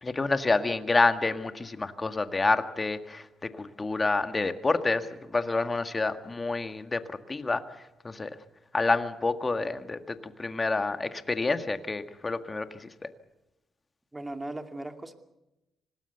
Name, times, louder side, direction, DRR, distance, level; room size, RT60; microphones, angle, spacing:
voice 1, 0.0-3.3 3.5-7.6 8.0-8.3 8.7-12.9, left 3 dB, 25° left, 9 dB, 1.8 m, -28 dB
voice 2, 14.1-15.1, right 1 dB, 15° right, 6 dB, 2.4 m, -37 dB
26.0 x 19.0 x 6.9 m, 0.93 s
cardioid pair, 90°, 0 cm